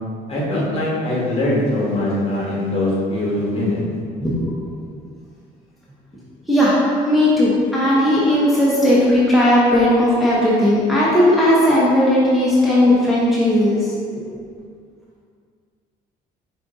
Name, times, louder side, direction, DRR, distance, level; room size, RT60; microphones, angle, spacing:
voice 1, 0.3-3.8, left 1 dB, 35° left, -6 dB, 1.4 m, -21 dB
voice 2, 4.2-4.6 6.5-6.7 7.1-13.9, left 1 dB, ahead, -9 dB, 0.8 m, -16 dB
5.1 x 3.6 x 2.6 m, 2.2 s
cardioid pair, 110°, 17 cm